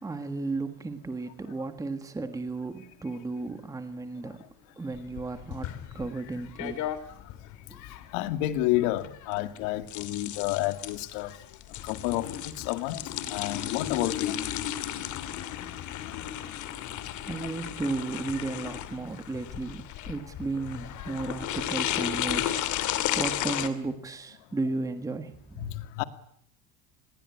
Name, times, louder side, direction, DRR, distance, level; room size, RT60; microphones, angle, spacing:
voice 1, 0.0-4.4 4.8-6.9 7.7-7.8 17.2-22.9 23.1-25.7, right 3 dB, 10° right, 1.5 m, -34 dB
sound 1, 4.9-23.7, left 11 dB, 45° left, 2.5 m, -34 dB
voice 2, 8.1-11.4 11.8-13.0 13.3-14.4 25.6-26.0, left 15 dB, 75° left, 2.4 m, -30 dB
28.5 x 21.5 x 9.7 m
cardioid pair, 175°, 42 cm